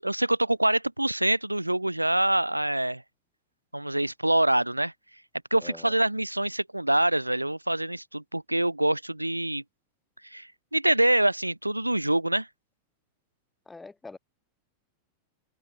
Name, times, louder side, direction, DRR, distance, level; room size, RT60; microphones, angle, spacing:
voice 1, 0.0-3.0 3.7-4.9 5.5-9.6 10.2-12.5, right 1 dB, 85° right, 0.3 m, -25 dB
voice 2, 5.6-5.9 13.7-14.2, left 3 dB, 10° left, 1.3 m, -44 dB
open air
figure-of-eight pair, 90°, 0 cm